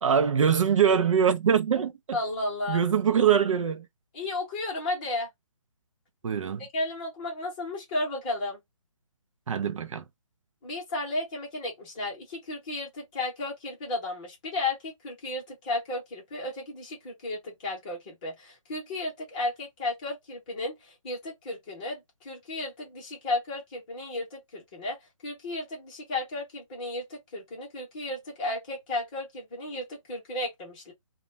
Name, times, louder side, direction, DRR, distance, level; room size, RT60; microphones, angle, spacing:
voice 1, 0.0-2.2 2.7-3.9 6.2-6.7 9.5-10.0, right 7 dB, 70° right, 0.5 m, -23 dB
voice 2, 2.1-2.8 4.1-5.3 6.7-8.6 10.6-30.9, left 2 dB, 15° left, 0.8 m, -33 dB
2.2 x 2.1 x 3.2 m
hypercardioid pair, 170°, 17 cm